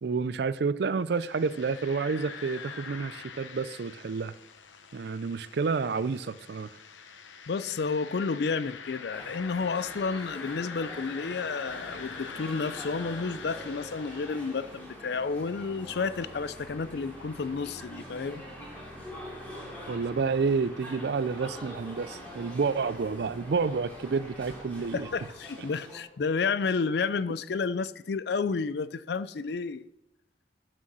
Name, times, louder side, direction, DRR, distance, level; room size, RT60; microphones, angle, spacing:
voice 1, 0.0-4.3 4.9-6.7 19.9-25.1, right 4 dB, 60° right, 0.4 m, -29 dB
sound 1, 1.1-15.1, left 5 dB, 80° left, 0.9 m, -44 dB
voice 2, 7.5-18.4 24.9-29.9, left 4 dB, 60° left, 0.4 m, -31 dB
sound 2, 9.1-26.0, equal, 10° left, 3.1 m, -45 dB
sound 3, 11.7-25.3, equal, 10° right, 1.9 m, -51 dB
11.0 x 6.5 x 6.1 m
head